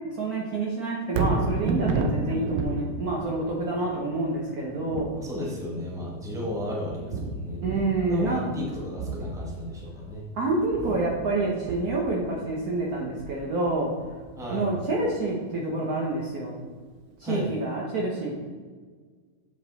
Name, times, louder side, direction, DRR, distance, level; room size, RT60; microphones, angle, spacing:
voice 1, 0.2-5.2 7.6-8.4 10.3-14.2 14.5-16.7 17.2-18.4, right 2 dB, 55° right, -3 dB, 1.3 m, -28 dB
Thunder, 1.0-15.2 15.7-15.8, right 3 dB, 75° right, 1.3 m, -33 dB
voice 2, 5.1-7.6 8.1-10.3 14.4-14.7 17.2-17.5, left 1 dB, ahead, -3 dB, 1.1 m, -33 dB
7.5 x 5.3 x 3.9 m, 1.5 s
omnidirectional pair, 2.1 m